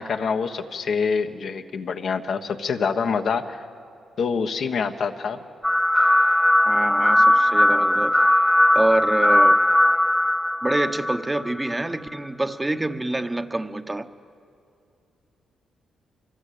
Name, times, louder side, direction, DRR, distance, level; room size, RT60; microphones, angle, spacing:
voice 1, 0.0-3.6 4.2-5.4, left 5 dB, 65° left, 5 dB, 1.3 m, -26 dB
sound 1, 5.6-11.7, left 1 dB, 10° left, 0.5 m, -19 dB
voice 2, 6.6-8.2 8.7-9.6 10.6-14.1, right 2 dB, 15° right, 7 dB, 1.2 m, -26 dB
24.5 x 22.0 x 8.5 m, 2.5 s
cardioid pair, 70°, 0 cm